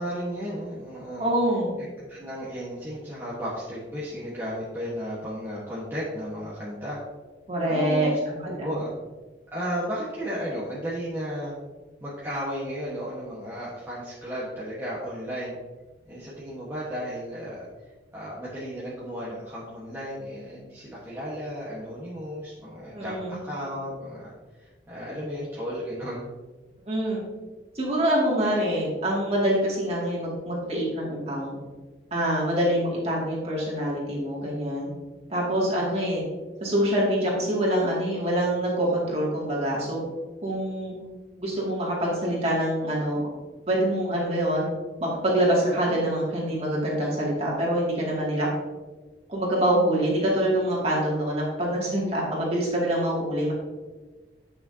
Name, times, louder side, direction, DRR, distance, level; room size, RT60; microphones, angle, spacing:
voice 1, 0.0-1.3 2.1-7.0 7.7-8.2 8.4-8.9 9.5-11.5 12.0-15.6 16.0-17.7 18.1-24.3 24.6-26.3, equal, 10° right, -8 dB, 1.4 m, -34 dB
voice 2, 1.2-1.7 7.5-8.8 22.9-23.4 26.9-27.2 27.7-31.6 32.1-34.9 35.3-36.2 36.6-40.0 40.4-40.9 41.4-43.3 43.7-44.7 45.0-48.5 49.3-53.5, right 1 dB, 35° right, -5 dB, 2.4 m, -25 dB
10.0 x 6.1 x 2.8 m, 1.3 s
head